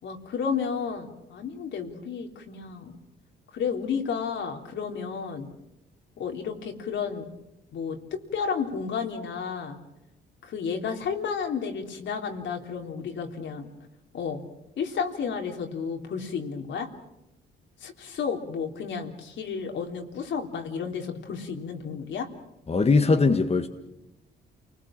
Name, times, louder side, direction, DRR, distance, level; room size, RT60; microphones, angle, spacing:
voice 1, 0.0-2.9 3.5-5.5 6.2-7.3 7.7-8.0 8.3-9.8 10.4-13.7 14.1-14.4 14.8-16.9 17.8-22.3, left 6 dB, 70° left, 3 dB, 3.4 m, -32 dB
voice 2, 22.7-23.7, left 4 dB, 30° left, 5 dB, 1.7 m, -20 dB
29.0 x 20.0 x 7.5 m, 0.90 s
cardioid pair, 90°, 20 cm